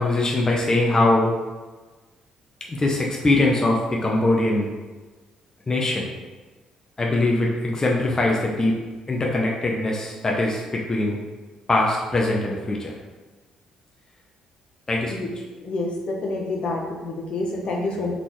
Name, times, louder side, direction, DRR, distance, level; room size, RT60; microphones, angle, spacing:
voice 1, 0.0-1.3 2.7-4.7 5.7-6.1 7.0-8.8 9.1-11.2 11.7-12.9 14.9-15.1, left 2 dB, 30° left, -2 dB, 0.8 m, -22 dB
voice 2, 15.6-18.1, left 2 dB, 60° left, -1 dB, 1.0 m, -28 dB
3.9 x 3.7 x 3.1 m, 1.3 s
hypercardioid pair, 55°, 2 cm